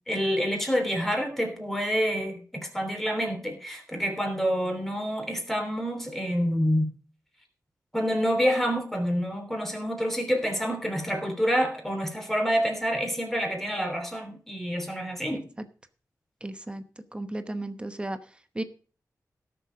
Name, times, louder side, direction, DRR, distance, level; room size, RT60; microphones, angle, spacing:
voice 1, 0.1-6.9 7.9-15.5, equal, 5° left, 4 dB, 3.2 m, -27 dB
voice 2, 16.4-16.8 17.1-18.2 18.5-18.6, right 1 dB, 15° right, 9 dB, 0.9 m, -34 dB
16.5 x 6.9 x 5.1 m, 0.39 s
wide cardioid pair, 145°, 6 cm